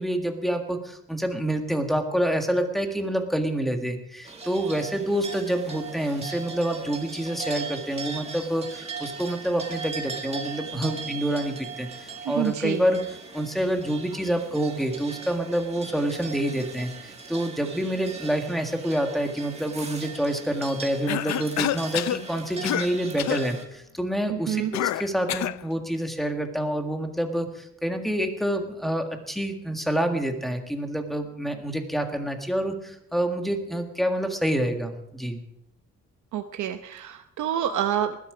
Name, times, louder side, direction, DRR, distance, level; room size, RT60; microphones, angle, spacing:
voice 1, 0.0-13.0 13.3-35.4, right 1 dB, ahead, 4 dB, 1.7 m, -27 dB
sound 1, 4.2-23.6, right 4 dB, 20° right, 1.8 m, -39 dB
voice 2, 12.2-12.8 24.3-24.7 36.3-38.2, right 10 dB, 90° right, 7 dB, 0.9 m, -27 dB
Cough, 21.1-22.2 22.6-22.9 23.2-23.5 24.7-25.6, left 13 dB, 70° left, 0.5 m, -27 dB
20.0 x 12.0 x 5.0 m, 0.79 s
wide cardioid pair, 165°, 29 cm